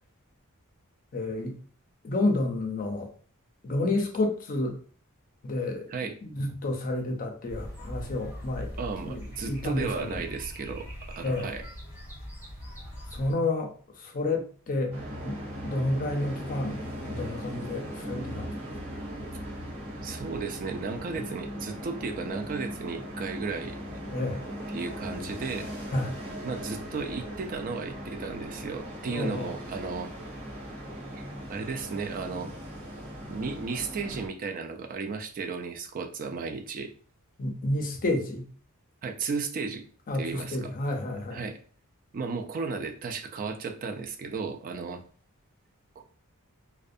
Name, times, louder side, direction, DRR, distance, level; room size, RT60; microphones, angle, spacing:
voice 1, 1.1-1.5 2.0-3.1 3.6-4.8 5.4-5.9 6.2-8.7 9.0-10.2 11.2-11.5 13.1-15.0 15.2-18.5 24.1-24.4 25.9-26.2 29.1-29.5 37.4-38.5 40.1-41.4, left 2 dB, 40° left, 3 dB, 0.5 m, -30 dB
sound 1, 7.5-13.3, equal, 10° right, 1.2 m, -41 dB
voice 2, 8.8-11.6 20.0-23.8 24.7-25.7 26.4-30.1 31.2-32.5 33.0-36.9 39.0-39.8 40.2-40.7 41.3-41.6 42.1-45.0 46.0-46.1, right 4 dB, 40° right, 5 dB, 0.3 m, -34 dB
sound 2, 14.9-34.3, equal, 60° right, 1.4 m, -39 dB
2.5 x 2.1 x 2.5 m, 0.42 s
head